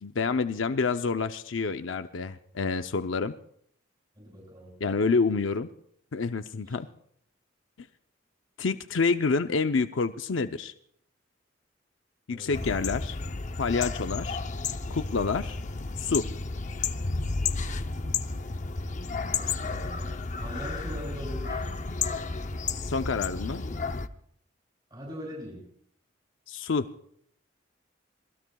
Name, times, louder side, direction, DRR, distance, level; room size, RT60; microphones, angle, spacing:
voice 1, 0.0-3.3 4.8-5.7 6.1-6.9 8.6-10.7 12.3-13.2 13.6-14.4 14.9-15.6 16.0-16.2 22.9-23.6 26.5-26.9, left 4 dB, 90° left, 8 dB, 0.6 m, -28 dB
voice 2, 4.2-4.8 6.7-6.8 12.3-12.8 19.3-20.1 20.4-21.6 24.9-25.6, equal, 20° right, -3 dB, 7.4 m, -41 dB
sound 1, 12.5-24.1, left 4 dB, 40° left, 0.6 m, -32 dB
26.5 x 20.5 x 2.3 m, 0.68 s
head